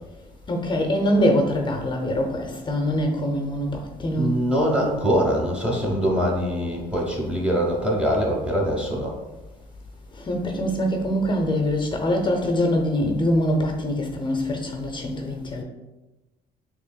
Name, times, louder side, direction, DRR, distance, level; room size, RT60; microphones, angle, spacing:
voice 1, 0.5-4.4 10.1-15.6, equal, 30° left, 3 dB, 0.6 m, -24 dB
voice 2, 4.2-9.1, equal, 5° right, -2 dB, 1.1 m, -23 dB
6.4 x 3.0 x 2.2 m, 1.1 s
cardioid pair, 110°, 17 cm